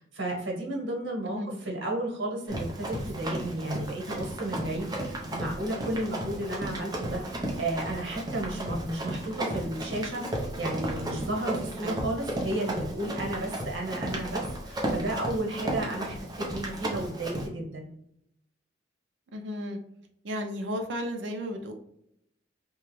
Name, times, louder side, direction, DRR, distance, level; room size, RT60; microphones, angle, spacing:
voice 1, 0.0-17.9, right 1 dB, 85° right, -1 dB, 1.1 m, -33 dB
voice 2, 1.2-1.6 11.8-12.0 19.3-19.8 20.2-21.7, equal, 70° right, 4 dB, 0.5 m, -34 dB
Run, 2.5-17.5, right 1 dB, 20° right, 0.6 m, -34 dB
2.9 x 2.3 x 3.0 m, 0.74 s
head